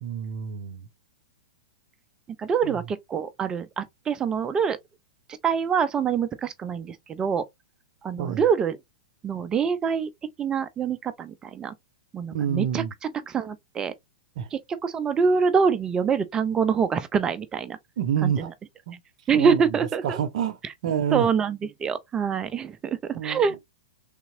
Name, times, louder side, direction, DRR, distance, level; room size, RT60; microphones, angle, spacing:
voice 1, 0.0-0.9 2.6-2.8 8.2-8.4 12.3-12.9 14.4-14.5 18.0-18.5 18.9-19.0 19.3-19.6 20.0-20.6 20.8-21.3 23.1-23.6, right 8 dB, 60° right, 0.7 m, -28 dB
voice 2, 2.4-4.8 5.4-7.4 8.0-8.8 9.2-10.1 10.4-11.7 12.1-12.8 13.3-13.9 14.5-17.8 18.2-18.5 19.3-20.2 21.1-23.6, right 6 dB, 20° right, 0.5 m, -25 dB
3.6 x 2.9 x 2.6 m
hypercardioid pair, 115°, 4 cm